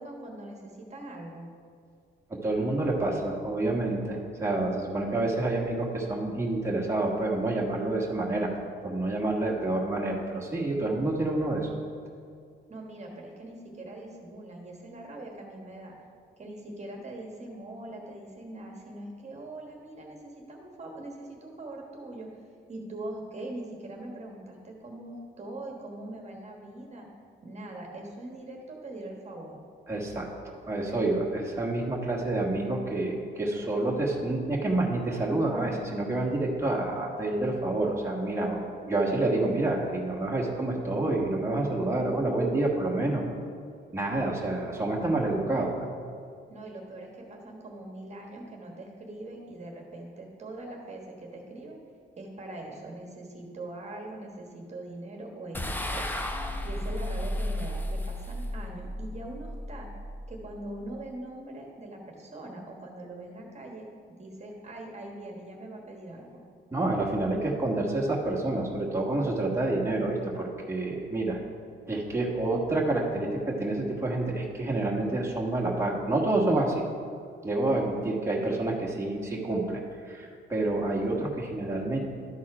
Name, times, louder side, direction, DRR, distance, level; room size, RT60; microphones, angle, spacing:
voice 1, 0.0-1.5 12.7-16.0 16.4-22.3 22.7-27.1 27.4-29.6 46.5-51.8 52.2-59.9 60.3-63.9 64.2-66.4, right 1 dB, 35° right, 0 dB, 1.4 m, -42 dB
voice 2, 2.3-8.5 8.8-11.7 29.9-43.2 43.9-45.7 66.7-71.4 71.9-76.8 77.4-82.0, right 2 dB, 15° right, -3 dB, 1.4 m, -28 dB
sound 1, 55.5-60.9, left 1 dB, 10° left, 0.7 m, -34 dB
12.5 x 4.2 x 4.8 m, 2.3 s
cardioid pair, 90°, 20 cm